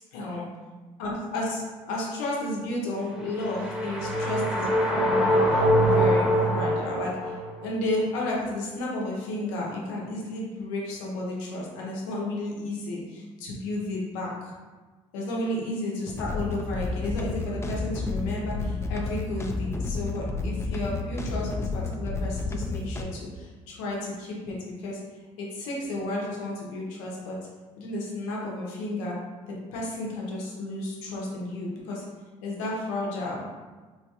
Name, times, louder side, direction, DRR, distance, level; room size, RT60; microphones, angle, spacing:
voice 1, 0.1-0.5 1.0-14.5 15.1-25.0 25.4-27.4 27.8-29.2 29.5-32.0 32.4-33.5, left 1 dB, 85° left, -3 dB, 0.7 m, -32 dB
sound 1, 3.2-7.5, equal, 5° right, 0.8 m, -23 dB
sound 2, 16.0-23.0, left 3 dB, 15° left, 0.4 m, -31 dB
3.8 x 2.3 x 2.8 m, 1.3 s
hypercardioid pair, 55°, 16 cm